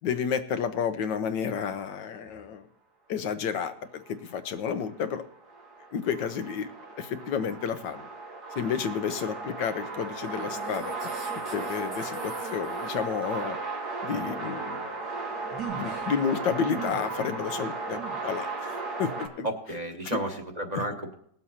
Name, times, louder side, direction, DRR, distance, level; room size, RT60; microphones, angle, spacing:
voice 1, 0.0-2.7 3.1-5.2 5.9-6.7 7.0-8.1 8.6-10.9 11.5-13.6 14.0-14.9 15.8-19.5 20.0-20.2, left 7 dB, 90° left, 9 dB, 1.5 m, -31 dB
sound 1, 4.3-19.3, right 3 dB, 65° right, 2.4 m, -35 dB
voice 2, 19.4-21.2, right 1 dB, 25° right, 2 dB, 1.2 m, -32 dB
19.5 x 7.5 x 4.2 m, 0.67 s
omnidirectional pair, 1.8 m